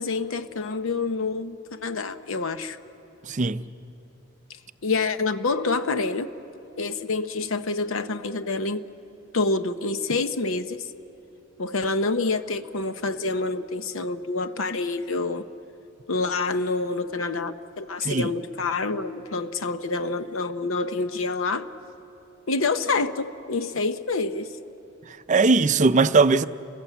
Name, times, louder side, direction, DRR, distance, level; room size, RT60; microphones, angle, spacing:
voice 1, 0.0-2.8 4.8-6.3 6.8-8.8 9.3-10.8 11.6-15.4 16.1-21.7 22.5-24.6, left 3 dB, 70° left, 0.8 m, -27 dB
voice 2, 3.3-3.6 18.0-18.3 25.3-26.4, right 4 dB, 35° right, 0.5 m, -19 dB
29.0 x 20.0 x 8.2 m
head